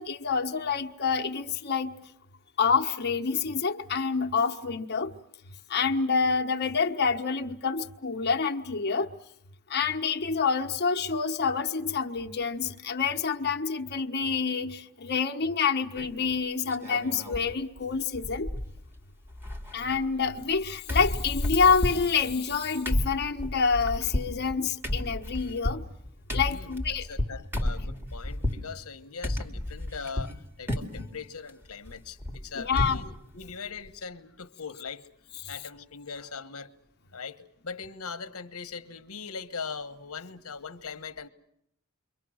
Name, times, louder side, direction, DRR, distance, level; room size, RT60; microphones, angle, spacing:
voice 1, 0.0-2.0 2.6-5.1 5.5-9.1 9.7-18.5 19.7-25.8 26.3-27.0 32.5-33.0, left 5 dB, 50° left, 1.3 m, -27 dB
sound 1, 15.9-16.3 16.7-17.5 17.8-17.9 18.1-19.0 19.2-20.6 20.9-28.7 29.2-30.4 30.7-31.1 31.5-33.1 33.4-33.5 33.8-34.0, left 1 dB, 10° right, 2.4 m, -32 dB
voice 2, 26.5-35.1 35.4-36.7 37.1-41.3, left 5 dB, 75° left, 1.2 m, -40 dB
29.0 x 24.0 x 6.4 m
head